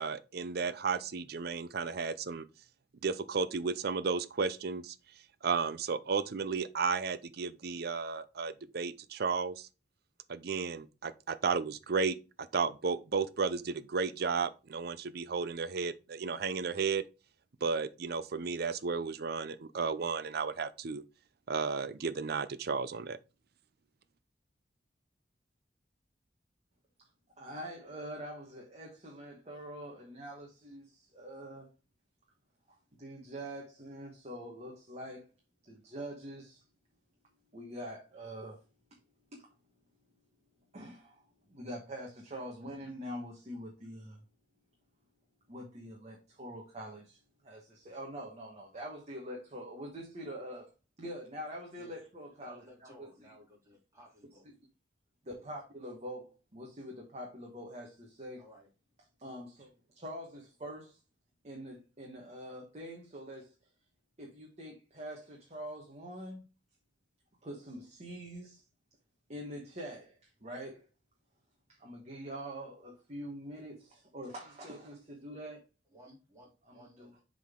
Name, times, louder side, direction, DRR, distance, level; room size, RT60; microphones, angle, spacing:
voice 1, 0.0-2.4 3.0-4.9 5.4-9.7 10.3-12.2 12.5-17.0 17.6-21.0 21.5-23.2, right 5 dB, 60° right, 0.5 m, -33 dB
voice 2, 27.4-31.7 32.7-35.3 35.6-36.6 37.5-38.6 39.3-39.4 40.7-44.2 45.5-50.7 51.0-52.6 53.0-53.1 55.3-58.4 59.2-59.7 59.9-61.0 61.4-63.5 64.2-66.4 67.4-68.6 69.3-70.9 71.7-75.6 76.7-77.1, equal, 40° right, 1.4 m, -44 dB
voice 3, 52.4-54.4 55.3-55.6 58.4-58.7 59.2-59.4 75.9-77.2, equal, 20° right, 3.2 m, -57 dB
7.3 x 3.9 x 3.7 m
head